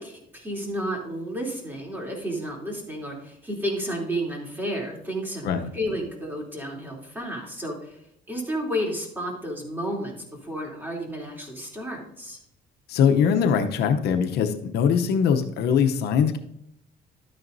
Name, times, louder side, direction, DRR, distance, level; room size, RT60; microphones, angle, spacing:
voice 1, 0.0-8.0 8.3-10.2 10.4-12.4, equal, 10° right, -1 dB, 3.1 m, -31 dB
voice 2, 12.9-16.4, left 7 dB, 75° left, 6 dB, 0.8 m, -22 dB
12.0 x 9.1 x 2.7 m, 0.76 s
cardioid pair, 110°, 17 cm